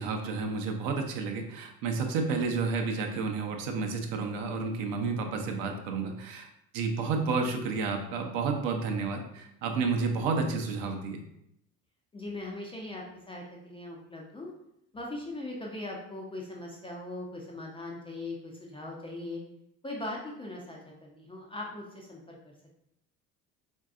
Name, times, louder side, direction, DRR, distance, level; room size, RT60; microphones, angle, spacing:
voice 1, 0.0-6.5 6.7-11.2, right 4 dB, 50° right, 4 dB, 0.6 m, -31 dB
voice 2, 12.1-14.5 14.9-19.4 19.8-22.5, left 2 dB, 10° left, -2 dB, 0.4 m, -40 dB
3.8 x 2.6 x 2.4 m, 0.76 s
figure-of-eight pair, 60°, 47 cm